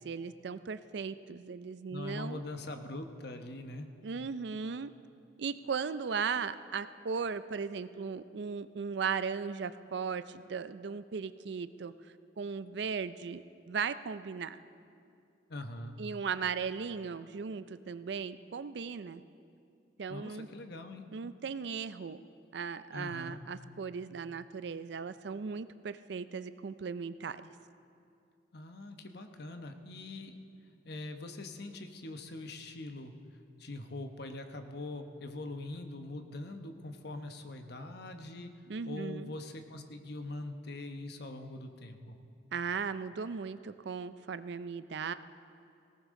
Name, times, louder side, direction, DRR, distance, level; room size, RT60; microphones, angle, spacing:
voice 1, 0.0-2.4 4.0-4.9 5.4-11.9 12.4-14.6 16.0-19.2 20.0-20.5 21.1-22.2 22.5-27.5 38.7-39.3 42.5-45.1, right 5 dB, 60° right, 14 dB, 0.4 m, -37 dB
voice 2, 1.9-3.9 15.5-16.0 20.1-21.0 22.9-23.4 28.5-30.4 30.8-33.1 33.6-38.5 38.9-42.2, left 2 dB, 60° left, 6 dB, 1.0 m, -42 dB
19.5 x 17.5 x 3.7 m, 2.5 s
head